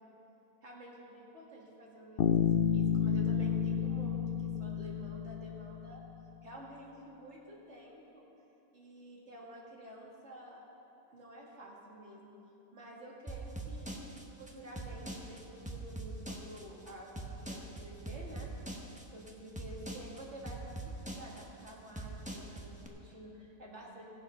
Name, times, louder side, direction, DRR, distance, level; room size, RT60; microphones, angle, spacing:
voice 1, 0.6-6.0 6.4-8.2 8.7-10.6 11.1-12.3 12.7-18.8 19.1-24.1, equal, 50° right, -3 dB, 2.3 m, -50 dB
Bass guitar, 2.2-6.0, left 8 dB, 80° left, 0.5 m, -30 dB
sound 1, 13.3-22.9, right 2 dB, 5° right, 0.9 m, -43 dB
18.0 x 7.2 x 5.6 m, 2.9 s
omnidirectional pair, 1.6 m